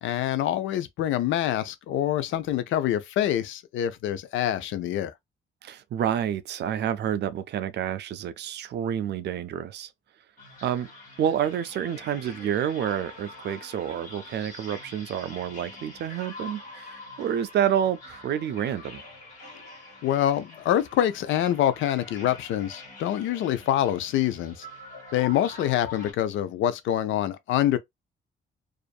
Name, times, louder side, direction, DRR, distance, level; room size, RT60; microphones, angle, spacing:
voice 1, 0.0-5.1 20.0-24.7 25.1-27.8, left 11 dB, 80° left, 0.5 m, -25 dB
voice 2, 5.6-9.9 10.6-10.9 11.2-19.1, right 9 dB, 60° right, 0.4 m, -29 dB
sound 1, 10.4-26.1, left 3 dB, 40° left, 1.6 m, -44 dB
2.5 x 2.5 x 2.2 m
cardioid pair, 90°, 20 cm